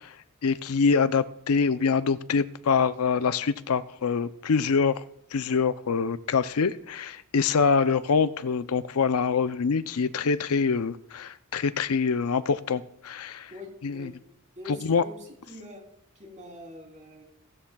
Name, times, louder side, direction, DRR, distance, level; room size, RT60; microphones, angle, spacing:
voice 1, 0.4-5.0 5.3-13.5 13.8-14.1 14.9-15.0, left 5 dB, 80° left, 13 dB, 0.5 m, -25 dB
voice 2, 13.5-14.1 14.6-15.9 16.2-17.2, left 1 dB, 35° right, 0 dB, 3.5 m, -44 dB
17.0 x 13.0 x 2.3 m, 0.78 s
head